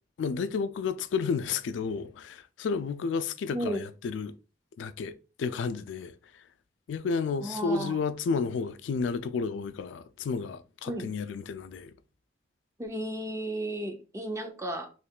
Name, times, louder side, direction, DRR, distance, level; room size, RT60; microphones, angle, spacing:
voice 1, 0.2-4.3 4.8-6.2 6.9-11.9, left 5 dB, 85° left, 0.3 m, -31 dB
voice 2, 3.5-3.9 7.4-8.0 10.9-11.1 12.8-14.9, right 1 dB, 15° right, 0.5 m, -34 dB
3.6 x 3.1 x 2.3 m
head